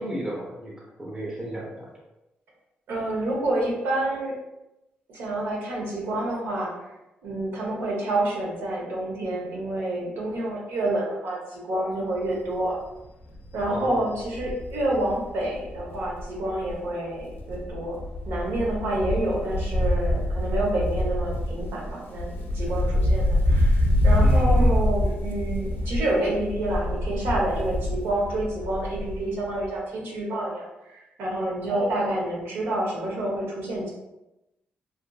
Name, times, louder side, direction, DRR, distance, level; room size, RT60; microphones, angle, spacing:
voice 1, 0.0-1.9 13.7-14.0 24.2-24.8 31.7-32.0, right 1 dB, 20° right, -3 dB, 0.6 m, -33 dB
voice 2, 2.9-4.3 5.1-6.9 7.2-12.8 13.5-18.0 18.3-33.9, right 1 dB, 90° right, -3 dB, 0.8 m, -28 dB
Wind, 12.3-12.6 13.0-13.1 13.3-16.9 17.2-29.3 29.6-29.7, left 1 dB, 70° left, 0.4 m, -25 dB
2.6 x 2.5 x 2.3 m, 0.94 s
cardioid pair, 135°, 4 cm